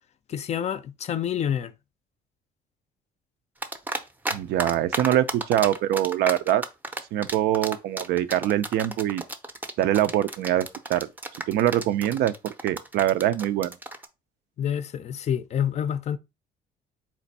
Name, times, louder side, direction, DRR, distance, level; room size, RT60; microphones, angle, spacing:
voice 1, 0.3-1.7 14.6-16.2, left 9 dB, 40° left, 0.4 m, -28 dB
sound 1, 3.6-4.3 4.6-14.1, right 2 dB, 10° right, 0.5 m, -32 dB
voice 2, 4.3-6.6 7.1-9.2 9.8-11.1 11.5-13.8, right 12 dB, 75° right, 0.4 m, -24 dB
4.3 x 2.5 x 4.0 m
cardioid pair, 110°, 17 cm